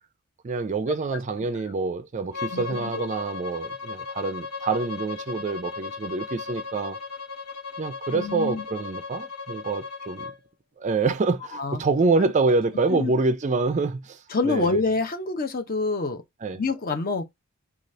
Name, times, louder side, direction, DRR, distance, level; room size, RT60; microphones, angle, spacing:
voice 1, 0.4-7.0 7.8-10.3 10.8-14.2 14.4-14.8 16.4-16.6, right 3 dB, 35° right, 0.3 m, -26 dB
Bowed string instrument, 2.3-10.4, left 5 dB, 85° left, 0.9 m, -36 dB
voice 2, 2.5-3.1 8.1-8.6 11.5-11.8 12.9-13.1 14.3-16.2 16.5-17.3, left 3 dB, 40° left, 0.6 m, -27 dB
3.9 x 2.3 x 3.1 m
head